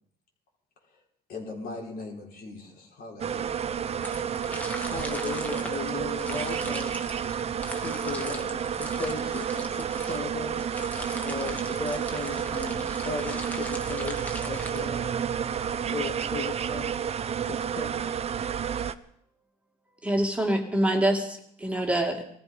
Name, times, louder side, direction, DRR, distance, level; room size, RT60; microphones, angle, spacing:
voice 1, 1.3-3.6, left 3 dB, 60° left, 4.2 m, -40 dB
sound 1, 3.2-18.9, right 8 dB, 40° right, 0.8 m, -31 dB
sound 2, 4.0-15.4, equal, 10° left, 1.9 m, -41 dB
voice 2, 4.8-6.9 7.7-10.6 11.2-15.1 15.9-17.0 17.4-18.1, left 4 dB, 40° left, 2.1 m, -36 dB
voice 3, 20.0-22.2, right 1 dB, 5° right, 2.4 m, -25 dB
19.0 x 14.0 x 5.3 m
cardioid pair, 110°, 17 cm